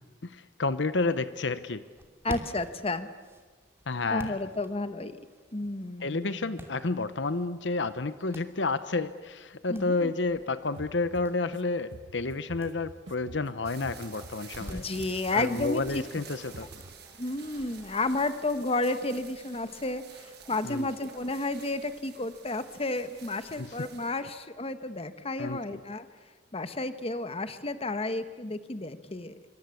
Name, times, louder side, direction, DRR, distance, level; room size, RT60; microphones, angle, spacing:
voice 1, 0.2-1.8 3.9-4.4 6.0-14.8 15.3-16.7 20.6-20.9 23.6-23.7 25.4-25.8, left 3 dB, 70° left, 13 dB, 1.0 m, -30 dB
sound 1, 1.8-18.2, equal, 15° right, 2.7 m, -50 dB
voice 2, 2.2-3.1 4.1-5.2 5.5-6.6 9.7-10.1 14.7-16.0 16.6-16.7 17.2-26.1 26.5-29.4, left 2 dB, 30° left, 11 dB, 1.2 m, -32 dB
sound 2, 10.8-11.6 11.9-14.7 15.0-16.2 16.5-16.9, right 2 dB, 85° right, 1.4 m, -47 dB
sound 3, 13.6-24.2, right 6 dB, 60° right, 7.3 m, -50 dB
26.5 x 25.0 x 8.4 m, 1.4 s
head